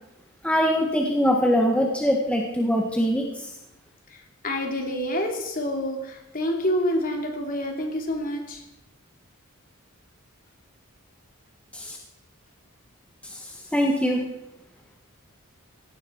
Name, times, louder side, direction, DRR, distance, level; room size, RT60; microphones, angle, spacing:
voice 1, 0.4-3.5 11.7-12.0 13.2-14.2, equal, 5° left, 0 dB, 1.6 m, -23 dB
voice 2, 4.1-8.6, equal, 40° left, 2 dB, 3.1 m, -28 dB
17.5 x 16.0 x 4.7 m, 0.87 s
head